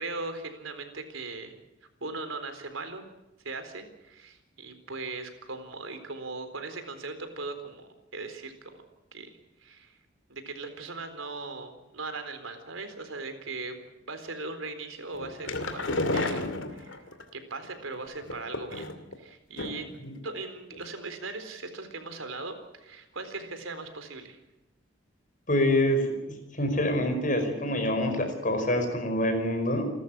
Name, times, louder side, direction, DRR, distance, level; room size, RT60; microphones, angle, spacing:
voice 1, 0.0-1.6 2.0-3.1 3.4-8.7 9.1-9.3 9.6-9.9 10.3-13.7 14.0-16.4 16.7-17.0 17.3-18.9 19.2-19.9 20.2-24.4, right 3 dB, 90° right, 8 dB, 4.1 m, -39 dB
sound 1, 15.1-17.2 18.2-19.1 19.6-20.0 20.3-20.4 20.7-20.8, left 2 dB, 75° left, 2.5 m, -32 dB
voice 2, 25.5-26.2 26.5-29.9, left 1 dB, 40° left, 6 dB, 5.0 m, -26 dB
29.0 x 13.5 x 8.8 m, 0.94 s
head